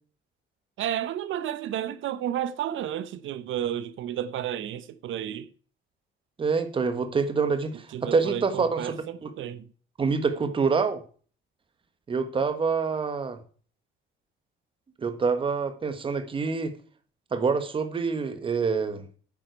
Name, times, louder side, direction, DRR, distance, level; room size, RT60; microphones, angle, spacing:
voice 1, 0.8-5.5 7.9-9.7, right 11 dB, 70° right, 0.8 m, -32 dB
voice 2, 6.4-9.0 9.2-9.3 10.0-11.0 12.1-13.4 15.0-16.7 17.3-19.1, right 5 dB, 25° right, 1.3 m, -26 dB
9.3 x 7.6 x 4.5 m
cardioid pair, 175°, 21 cm